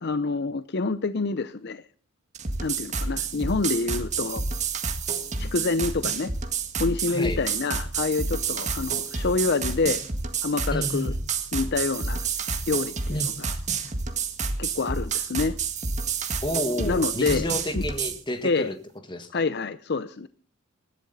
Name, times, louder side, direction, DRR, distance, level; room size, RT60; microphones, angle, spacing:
voice 1, 0.0-1.8 2.6-4.4 5.4-6.3 6.8-10.0 10.4-11.1 11.5-12.3 12.7-13.5 14.6-15.5 16.8-17.5 17.7-17.8 18.4-18.7 19.3-20.3, left 4 dB, 55° left, 13 dB, 0.6 m, -27 dB
sound 1, 2.3-18.2, right 5 dB, 35° right, 1.8 m, -29 dB
voice 2, 7.1-7.4 10.7-11.2 13.1-13.4 16.4-18.8 19.1-19.4, left 1 dB, 25° left, 8 dB, 1.8 m, -30 dB
20.0 x 14.5 x 4.1 m, 0.40 s
head